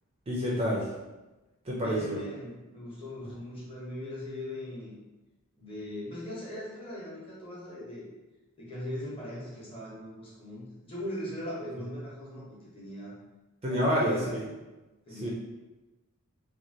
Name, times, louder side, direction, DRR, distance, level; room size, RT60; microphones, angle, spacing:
voice 1, 0.3-0.9 1.6-2.2 13.6-14.4 15.1-15.3, equal, 25° right, -4 dB, 0.4 m, -28 dB
voice 2, 1.7-4.9 5.6-8.1 8.6-12.5 12.7-13.2 13.7-14.4 15.1-15.3, left 1 dB, 25° left, -7 dB, 0.9 m, -39 dB
3.0 x 2.3 x 2.7 m, 1.1 s
head